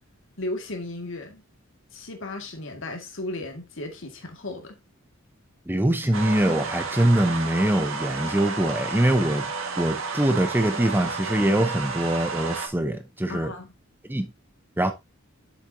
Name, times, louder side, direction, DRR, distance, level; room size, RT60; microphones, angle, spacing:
voice 1, 0.4-1.4 1.9-4.8 13.3-13.7, left 2 dB, 65° left, 1.9 m, -35 dB
voice 2, 5.7-9.5 9.8-13.5 14.1-14.3 14.8-14.9, right 1 dB, 10° right, 0.7 m, -23 dB
sound 1, 6.1-12.7, right 4 dB, 75° right, 1.7 m, -31 dB
7.8 x 7.1 x 2.7 m
head